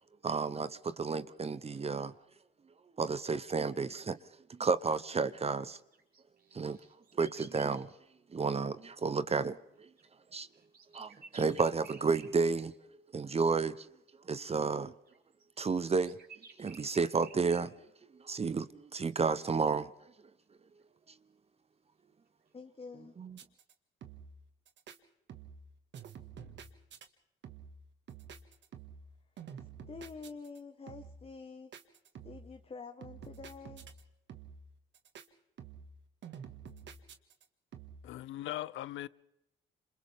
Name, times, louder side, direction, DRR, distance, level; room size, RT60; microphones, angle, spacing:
voice 1, 0.2-2.1 3.0-4.2 4.5-5.8 6.5-6.8 7.1-7.9 8.3-9.9 10.3-10.5 10.9-12.7 13.1-13.9 14.3-14.9 15.6-16.2 16.6-17.7 18.2-19.9 23.2-23.4, right 4 dB, 30° right, 0.9 m, -31 dB
sound 1, 5.9-7.8 10.0-12.4 13.6-13.7 15.1-17.6, right 4 dB, 50° right, 5.6 m, -55 dB
voice 2, 22.5-23.1 29.6-31.7 32.2-33.9, left 4 dB, 30° left, 1.4 m, -48 dB
sound 2, 23.3-23.7 24.0-24.4 24.7-25.0 25.3-25.7 25.9-27.1 27.4-27.8 28.1-29.1 29.4-30.6 30.9-31.3 31.7-32.5 33.0-34.0 34.3-34.7 34.9-35.3 35.6-36.0 36.2-37.4 37.7-38.1, right 7 dB, 65° right, 1.9 m, -49 dB
voice 3, 38.0-39.1, left 14 dB, 80° left, 0.7 m, -39 dB
28.0 x 27.0 x 3.6 m
cardioid pair, 90°, 20 cm